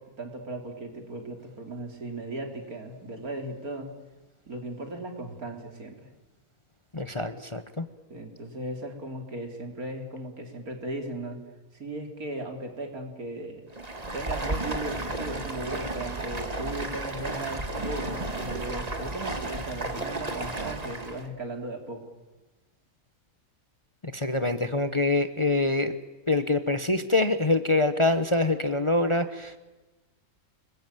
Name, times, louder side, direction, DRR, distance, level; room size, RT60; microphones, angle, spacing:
voice 1, 0.2-3.9 4.5-6.1 8.1-11.4 11.7-13.7 14.1-22.0, right 1 dB, 70° right, 4 dB, 3.8 m, -37 dB
voice 2, 6.9-7.9 24.1-25.9 26.3-29.6, left 2 dB, 25° left, 10 dB, 1.0 m, -25 dB
Stream, 13.7-21.3, right 2 dB, 25° right, 1.9 m, -33 dB
29.5 x 20.5 x 9.1 m, 1.2 s
omnidirectional pair, 1.6 m